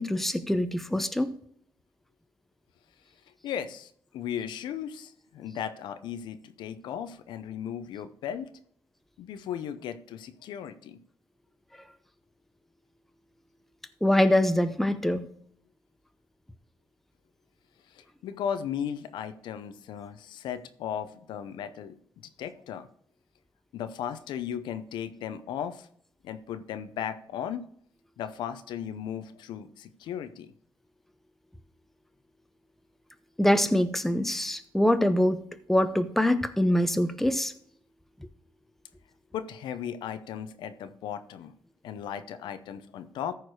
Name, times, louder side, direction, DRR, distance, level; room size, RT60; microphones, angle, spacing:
voice 1, 0.0-1.3 14.0-15.2 33.4-37.5, left 1 dB, 5° left, 10 dB, 0.7 m, -24 dB
voice 2, 3.4-8.5 9.2-11.0 17.9-21.9 22.4-22.9 23.7-25.9 26.2-27.6 28.2-30.5 39.3-41.5 41.8-43.3, left 9 dB, 90° left, 11 dB, 0.7 m, -36 dB
14.0 x 4.7 x 4.7 m, 0.65 s
cardioid pair, 100°, 8 cm